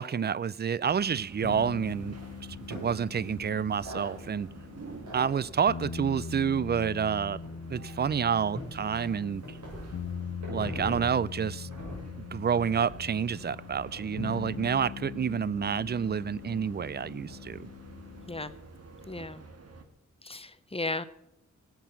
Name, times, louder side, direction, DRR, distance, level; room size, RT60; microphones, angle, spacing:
voice 1, 0.0-2.1 2.7-4.5 5.1-7.4 7.7-9.6 10.5-11.7 12.2-17.7, right 7 dB, 35° right, 0.4 m, -29 dB
sound 1, 0.8-19.8, right 3 dB, 55° right, 1.6 m, -50 dB
sound 2, 1.3-19.1, equal, 70° right, 7.0 m, -47 dB
sound 3, 1.4-18.4, left 7 dB, 70° left, 0.8 m, -42 dB
voice 2, 19.1-19.4 20.2-21.1, left 2 dB, 20° left, 0.7 m, -35 dB
17.5 x 8.3 x 5.9 m
wide cardioid pair, 120°, 30 cm